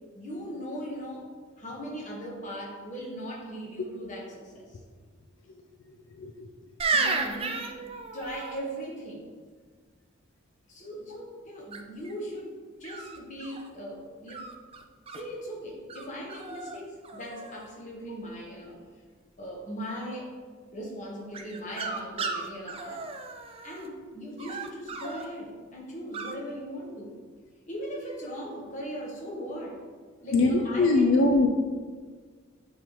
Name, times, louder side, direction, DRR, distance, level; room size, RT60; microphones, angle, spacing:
voice 1, 0.1-1.3 1.6-4.8 6.9-9.3 10.7-14.5 15.1-18.8 19.4-20.3 20.7-23.1 23.6-27.1 27.7-29.8 30.2-31.4, equal, 40° left, -2 dB, 1.3 m, -39 dB
sound 1, 6.8-8.6 11.7-12.1 12.8-13.7 14.3-15.2 15.9-16.0 16.3-16.8 17.0-17.7 21.3-23.9 24.4-25.2 26.1-26.3, right 4 dB, 30° right, 0.4 m, -33 dB
voice 2, 30.3-31.5, left 3 dB, 75° left, 2 dB, 0.5 m, -21 dB
8.9 x 3.7 x 3.1 m, 1.5 s
head